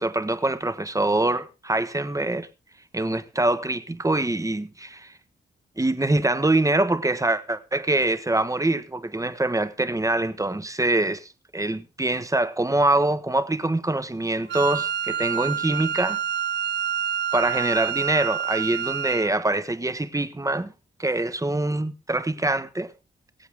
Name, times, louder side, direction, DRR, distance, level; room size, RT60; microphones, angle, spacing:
voice 1, 0.0-2.5 2.9-5.1 5.8-16.2 17.3-20.7 21.0-22.9, right 2 dB, 20° right, 1.4 m, -24 dB
Wind instrument woodwind instrument, 14.5-19.3, right 8 dB, 75° right, 0.6 m, -28 dB
23.5 x 8.2 x 3.6 m
cardioid pair, 70°, 18 cm